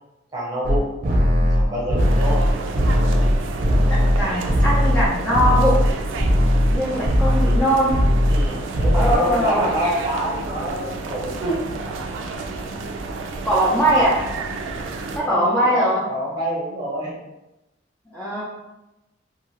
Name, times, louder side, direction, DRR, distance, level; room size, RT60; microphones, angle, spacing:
voice 1, 0.3-2.4 8.3-11.9 15.1-17.2, equal, 20° right, -5 dB, 0.9 m, -27 dB
sound 1, 0.6-5.9 6.2-6.8 7.0-7.6 7.9-8.5 8.7-9.1, equal, 45° right, 0.6 m, -18 dB
sound 2, 2.0-15.2, right 3 dB, 90° right, 0.4 m, -31 dB
voice 2, 3.9-5.7 6.7-8.0 8.9-9.7 13.4-14.2 15.2-16.1 18.1-18.4, right 1 dB, 10° left, -8 dB, 0.5 m, -21 dB
2.7 x 2.4 x 3.1 m, 0.97 s
head